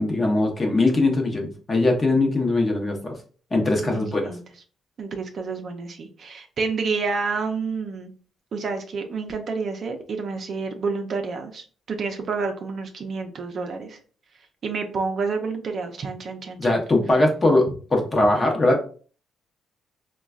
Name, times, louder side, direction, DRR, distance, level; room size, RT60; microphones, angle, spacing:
voice 1, 0.0-3.2 3.5-4.3 16.6-18.8, left 2 dB, 25° left, 1 dB, 0.8 m, -21 dB
voice 2, 3.8-4.4 5.0-8.1 8.5-14.0 14.6-16.7, right 4 dB, 55° right, 4 dB, 0.5 m, -29 dB
3.8 x 2.3 x 2.4 m, 0.41 s
cardioid pair, 90°, 0 cm